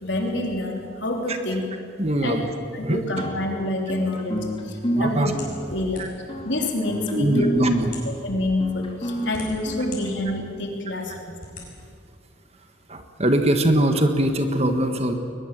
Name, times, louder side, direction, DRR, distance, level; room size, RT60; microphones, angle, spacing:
voice 1, 0.0-1.6 2.2-2.4 2.7-5.3 5.7-6.0 6.4-7.5 8.2-11.4, left 1 dB, 70° left, 1 dB, 3.4 m, -27 dB
voice 2, 2.0-2.5 2.8-3.0 4.9-5.3 6.0-6.1 7.1-7.9 12.9-15.1, right 1 dB, 35° right, 6 dB, 1.6 m, -22 dB
sound 1, 3.2-10.6, equal, 30° left, 2.7 m, -31 dB
sound 2, 5.4-6.4 7.1-7.2 7.8-8.2 8.9-10.0 10.5-10.6 11.4-11.7, left 4 dB, 45° left, 6.6 m, -40 dB
22.0 x 21.0 x 7.6 m, 2.3 s
head